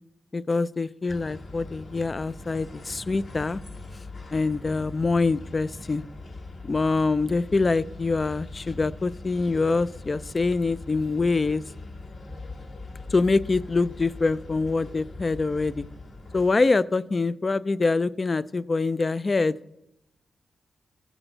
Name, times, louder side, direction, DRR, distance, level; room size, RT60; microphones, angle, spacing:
voice 1, 0.3-3.6 4.3-6.0 6.7-11.6 13.1-15.8 16.3-19.5, left 3 dB, 35° left, 16 dB, 0.3 m, -25 dB
sound 1, 1.1-16.5, left 2 dB, 70° left, 1.6 m, -41 dB
15.0 x 6.1 x 3.9 m, 0.85 s
cardioid pair, 90°, 0 cm